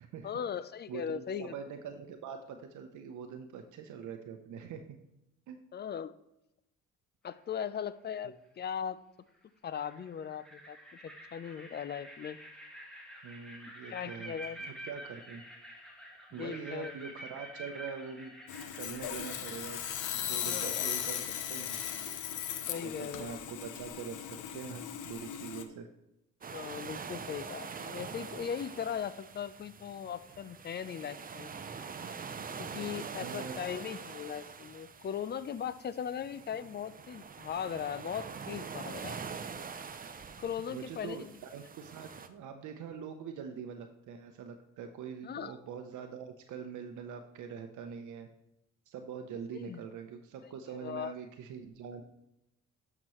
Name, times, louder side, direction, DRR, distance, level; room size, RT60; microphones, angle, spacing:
voice 1, 0.2-1.5 5.7-6.1 7.2-9.0 9.6-12.4 13.9-14.6 16.3-16.9 20.4-20.9 22.7-23.4 26.4-31.5 32.6-39.2 40.4-41.4 45.2-45.5 49.5-49.8 50.8-51.1, left 8 dB, 35° left, 15 dB, 0.5 m, -39 dB
voice 2, 0.9-4.8 5.5-5.6 13.2-14.3 14.6-15.4 16.3-18.3 18.8-19.8 20.1-21.8 22.8-24.2 24.5-25.9 33.1-33.6 40.7-48.3 48.9-52.0, right 6 dB, 75° right, 5 dB, 0.8 m, -43 dB
sound 1, 7.3-7.8 9.3-9.4 9.7-20.2, right 1 dB, 5° left, 2.0 m, -49 dB
Sawing, 18.5-25.6, left 10 dB, 80° left, 0.8 m, -37 dB
sound 2, 26.4-42.3, right 6 dB, 30° right, 0.6 m, -44 dB
12.0 x 5.9 x 3.1 m, 0.87 s
cardioid pair, 90°, 30 cm